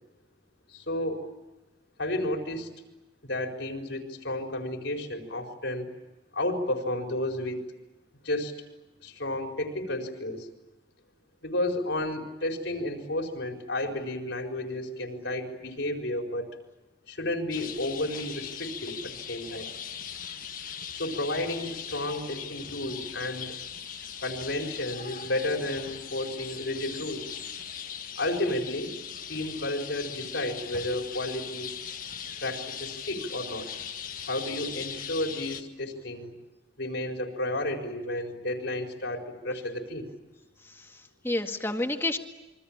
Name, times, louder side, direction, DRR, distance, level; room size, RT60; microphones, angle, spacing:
voice 1, 0.7-1.3 2.0-2.7 3.2-5.9 6.3-7.6 8.2-8.6 9.0-10.5 11.4-16.5 17.1-19.7 20.9-23.5 24.2-27.3 28.2-29.0 29.3-31.7 32.4-33.7 34.2-36.3 36.8-40.1, left 1 dB, 75° left, 2 dB, 4.5 m, -32 dB
Flock of birds, 17.5-35.6, left 8 dB, 45° left, 1.5 m, -40 dB
voice 2, 40.6-42.2, left 2 dB, 15° left, 4 dB, 2.0 m, -31 dB
28.0 x 24.5 x 8.8 m, 1.0 s
head